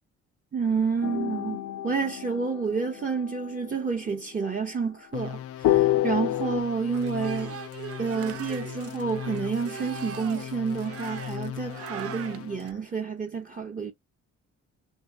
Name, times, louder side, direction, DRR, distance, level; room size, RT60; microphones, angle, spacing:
voice 1, 0.5-7.6 8.0-13.9, right 5 dB, 30° right, 0.8 m, -29 dB
sound 1, 1.0-3.5 5.6-6.6, left 14 dB, 85° left, 0.7 m, -26 dB
sound 2, 5.1-12.7, left 10 dB, 50° left, 0.5 m, -38 dB
sound 3, 6.9-12.7, right 10 dB, 50° right, 0.5 m, -40 dB
2.8 x 2.6 x 3.4 m
cardioid pair, 90°, 30 cm